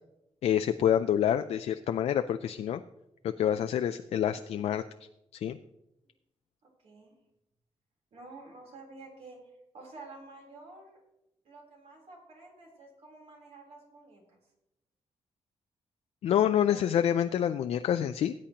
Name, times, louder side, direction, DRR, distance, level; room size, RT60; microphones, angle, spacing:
voice 1, 0.4-2.8 3.2-4.8 5.3-5.6 16.2-18.3, left 10 dB, 70° left, 9 dB, 0.4 m, -27 dB
voice 2, 6.8-7.2 8.1-9.4 9.7-11.0 11.5-14.4 16.7-16.8, right 3 dB, 70° right, 0 dB, 3.5 m, -50 dB
18.0 x 8.8 x 2.9 m, 0.88 s
wide cardioid pair, 145°, 11 cm